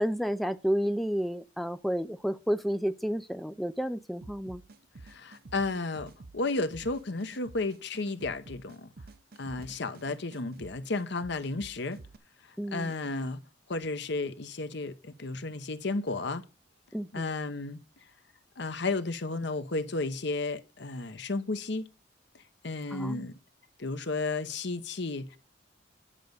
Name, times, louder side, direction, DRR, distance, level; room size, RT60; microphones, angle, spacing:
voice 1, 0.0-4.6 12.6-13.0 16.9-17.3 22.9-23.3, equal, ahead, 0.4 m, -31 dB
sound 1, 4.2-12.2, right 3 dB, 55° right, 0.7 m, -50 dB
voice 2, 5.0-8.9 9.4-12.0 12.7-13.4 13.7-16.4 17.1-17.8 18.6-21.9 22.6-23.4 23.8-25.4, left 3 dB, 70° left, 1.0 m, -33 dB
10.0 x 5.3 x 6.9 m
head